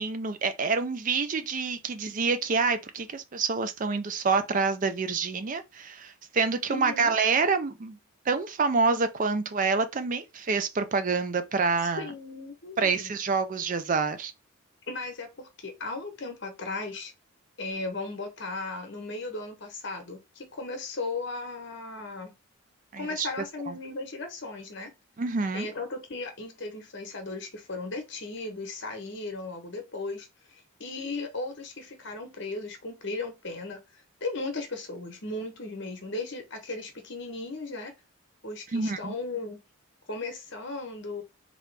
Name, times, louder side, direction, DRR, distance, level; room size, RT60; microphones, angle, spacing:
voice 1, 0.0-8.0 8.3-12.1 12.8-14.3 22.9-23.3 23.7-23.8 25.2-25.7 38.7-39.1, right 4 dB, 40° right, 0.4 m, -27 dB
voice 2, 6.7-7.1 12.0-13.2 14.9-17.1 17.6-22.3 23.0-24.9 25.5-30.3 30.8-33.8 34.2-37.9 38.4-39.6 40.1-41.2, left 3 dB, 55° left, 1.1 m, -36 dB
3.8 x 3.2 x 3.3 m
head